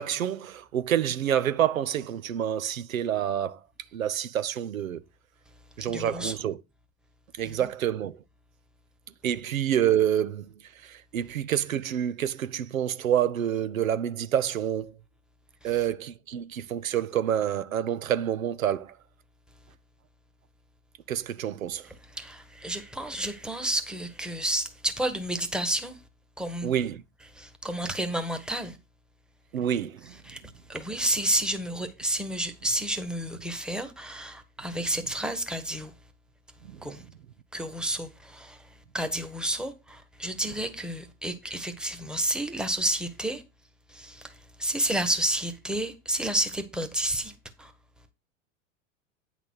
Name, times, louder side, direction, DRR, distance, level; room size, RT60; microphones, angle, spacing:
voice 1, 0.0-3.6 3.9-5.0 5.8-6.6 7.4-8.2 9.2-10.5 10.8-14.9 15.6-19.0 21.1-21.9 26.6-27.0 29.5-30.1 36.7-36.8, right 10 dB, 90° right, 0.7 m, -28 dB
voice 2, 5.8-6.3 7.4-7.6 15.6-15.7 22.1-26.0 26.4-26.7 27.3-28.8 30.3-30.4 30.7-35.9 36.8-37.0 37.5-38.6 38.9-43.4 43.9-47.3 47.6-47.7, right 1 dB, ahead, 1.2 m, -30 dB
8.9 x 4.1 x 6.2 m
hypercardioid pair, 90°, 39 cm